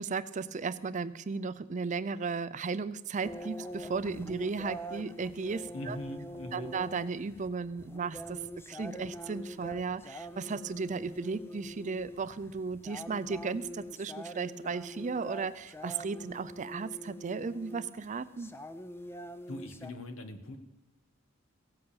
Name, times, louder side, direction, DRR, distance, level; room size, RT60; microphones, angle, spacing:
voice 1, 0.0-6.0 6.5-18.5, right 4 dB, 35° right, 15 dB, 0.4 m, -35 dB
sound 1, 3.2-19.9, equal, 10° left, 0.5 m, -44 dB
voice 2, 5.7-6.7 19.5-20.6, left 1 dB, 70° left, 8 dB, 1.3 m, -41 dB
16.5 x 7.9 x 7.0 m, 1.1 s
head